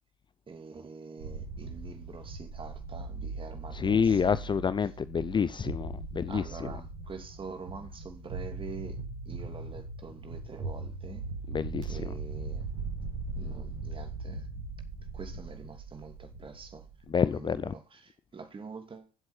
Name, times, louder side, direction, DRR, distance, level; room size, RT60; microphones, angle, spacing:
voice 1, 0.5-4.4 6.3-9.0 9.3-11.3 11.9-12.7 13.4-14.5 15.1-16.9 17.2-19.1, right 5 dB, 25° right, 2.8 m, -45 dB
sound 1, 1.2-17.3, right 3 dB, 65° right, 5.2 m, -39 dB
voice 2, 3.7-6.7 11.5-12.1 17.1-17.7, left 6 dB, 25° left, 0.6 m, -28 dB
15.5 x 7.8 x 4.5 m
figure-of-eight pair, 65°, 19 cm